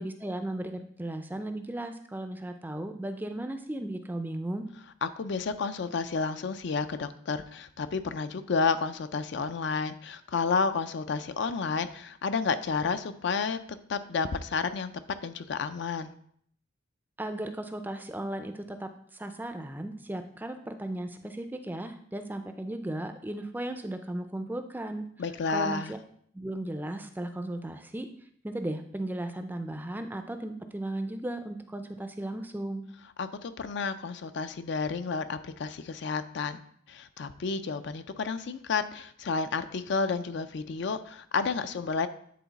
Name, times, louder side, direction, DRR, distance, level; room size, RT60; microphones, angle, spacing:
voice 1, 0.0-4.7 17.2-25.0 25.5-26.0 26.3-28.1 28.4-32.8, right 1 dB, 10° right, 7 dB, 0.4 m, -36 dB
voice 2, 5.0-14.9 15.2-16.1 25.2-25.9 33.2-36.6 36.9-42.1, left 4 dB, 60° left, 11 dB, 0.4 m, -31 dB
9.4 x 3.9 x 4.0 m, 0.64 s
head